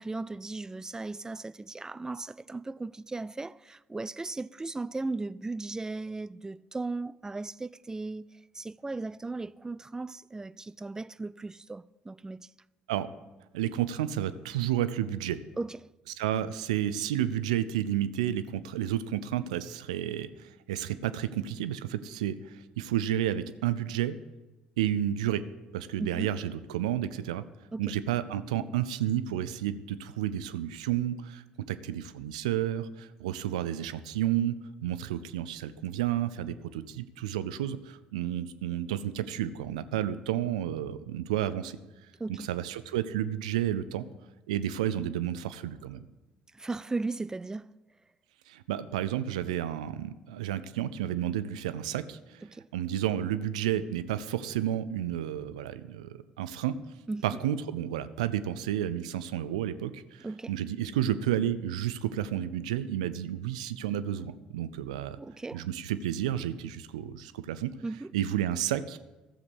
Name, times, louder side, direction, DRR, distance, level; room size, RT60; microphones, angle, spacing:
voice 1, 0.0-8.3 8.5-12.5 15.6-15.8 26.0-26.3 27.7-27.8 42.2-42.5 46.5-47.7 52.4-52.7 57.1-57.4 60.2-60.5 65.2-65.7 67.8-68.1, right 3 dB, 15° right, 0.3 m, -37 dB
voice 2, 13.5-15.4 16.2-24.2 24.8-25.4 25.7-27.4 27.8-31.4 31.7-34.6 34.8-41.8 42.3-44.0 44.5-46.0 48.5-52.4 52.7-56.7 57.2-65.2 65.5-67.7 68.1-69.0, right 11 dB, 85° right, 0.5 m, -31 dB
12.5 x 7.3 x 6.3 m
hypercardioid pair, 55°, 4 cm